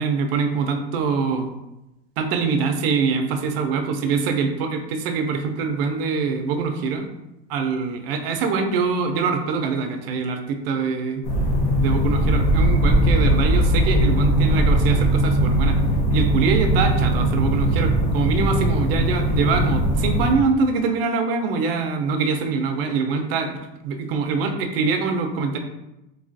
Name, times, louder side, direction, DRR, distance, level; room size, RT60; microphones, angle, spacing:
voice 1, 0.0-1.5 2.2-7.1 7.5-11.2 11.8-15.8 16.1-23.6 23.8-25.6, right 5 dB, 75° right, 5 dB, 0.5 m, -24 dB
sound 1, 11.2-20.3, right 1 dB, 45° left, 0.8 m, -19 dB
3.2 x 2.3 x 2.5 m, 0.93 s
supercardioid pair, 175°, 29 cm